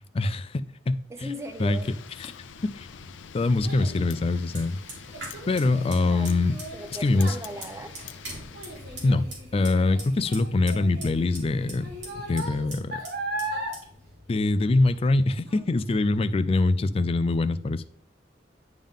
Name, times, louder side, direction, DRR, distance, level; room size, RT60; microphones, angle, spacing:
voice 1, 0.1-1.3 1.6-1.8 2.2-2.3 2.7-2.9 3.3-4.8 5.5-6.6 7.0-7.4 9.0-9.3 9.5-11.9 12.1-13.0 14.3-17.8, left 2 dB, 30° left, 13 dB, 0.3 m, -24 dB
voice 2, 1.1-1.9 5.9-6.3 6.7-8.1, right 1 dB, 15° right, 6 dB, 0.7 m, -38 dB
Wind, 1.2-9.4, left 6 dB, 90° left, 0.5 m, -45 dB
Child speech kid speaking, 2.5-15.1 15.5-15.9 16.4-16.5, right 1 dB, 55° right, 1.5 m, -38 dB
Fire, 4.3-16.2, right 1 dB, 85° right, 2.8 m, -44 dB
10.0 x 3.6 x 3.6 m, 0.65 s
head